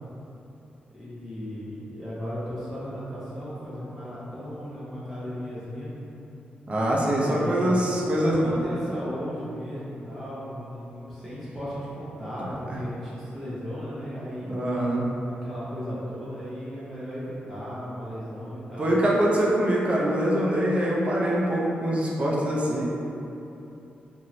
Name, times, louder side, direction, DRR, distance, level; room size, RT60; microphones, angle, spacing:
voice 1, 0.9-5.9 7.2-14.6 15.4-18.9, equal, 10° left, -11 dB, 0.8 m, -36 dB
voice 2, 6.7-8.5 12.4-12.5 14.4-15.1 18.8-22.8, right 1 dB, 35° right, -4 dB, 0.4 m, -24 dB
2.9 x 2.5 x 3.0 m, 2.9 s
wide cardioid pair, 110°, 3 cm